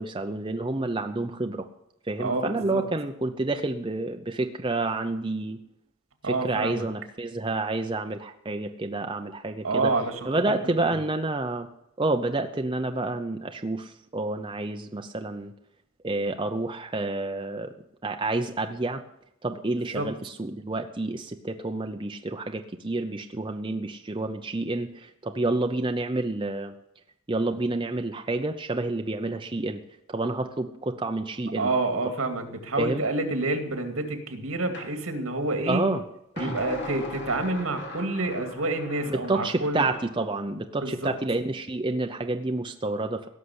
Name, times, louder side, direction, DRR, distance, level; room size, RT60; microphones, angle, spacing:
voice 1, 0.0-1.6 2.1-5.6 6.2-9.9 10.3-11.7 12.0-15.5 16.0-17.7 18.0-19.0 19.4-26.7 27.3-29.8 30.1-31.7 32.8-33.0 35.7-36.0 36.3-36.6 39.3-43.2, right 2 dB, 25° right, 5 dB, 0.7 m, -29 dB
voice 2, 2.2-2.8 6.2-6.9 9.6-10.3 10.6-10.7 19.9-20.1 31.6-35.8 36.4-39.9 40.8-41.1, right 2 dB, 75° right, 6 dB, 2.4 m, -28 dB
sound 1, 34.7-34.9 36.4-40.1, left 1 dB, 55° left, 2.4 m, -39 dB
17.0 x 6.7 x 9.7 m, 0.81 s
head